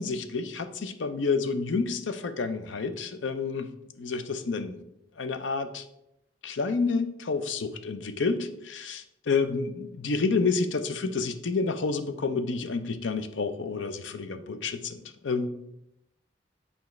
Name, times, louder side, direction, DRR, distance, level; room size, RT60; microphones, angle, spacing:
voice 1, 0.0-3.7 4.0-4.8 5.2-5.8 6.4-15.5, left 4 dB, 85° left, 10 dB, 0.6 m, -29 dB
7.1 x 5.1 x 3.1 m, 0.83 s
head